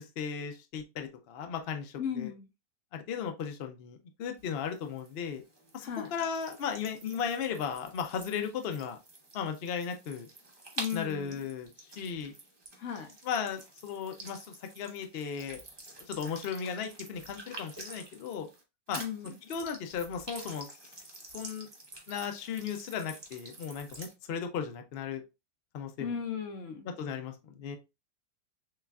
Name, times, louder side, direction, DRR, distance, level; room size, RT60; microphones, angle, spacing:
voice 1, 0.0-2.3 2.9-5.4 5.7-9.0 9.3-10.3 10.9-12.3 13.2-15.6 16.0-18.5 18.9-19.0 19.5-20.9 21.2-21.7 22.1-25.2 25.7-26.1 26.8-27.8, left 7 dB, 85° left, 0.5 m, -36 dB
voice 2, 2.0-2.5 5.8-6.1 10.8-11.4 12.8-13.1 19.0-19.4 26.0-26.9, left 8 dB, 55° left, 1.0 m, -36 dB
sound 1, 4.4-18.6 18.9-24.1, right 2 dB, 30° right, 0.5 m, -48 dB
6.4 x 2.4 x 2.3 m
omnidirectional pair, 1.8 m